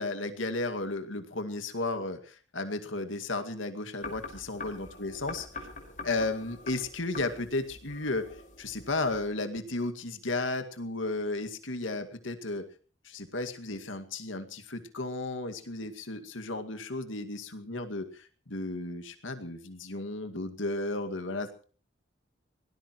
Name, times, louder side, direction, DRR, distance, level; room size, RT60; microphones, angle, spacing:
voice 1, 0.0-5.4 6.0-8.2 8.6-12.6 13.0-21.6, left 2 dB, 85° left, 7 dB, 2.2 m, -34 dB
sound 1, 4.0-9.3, left 3 dB, 40° left, 5.0 m, -45 dB
23.5 x 18.5 x 3.1 m, 0.41 s
head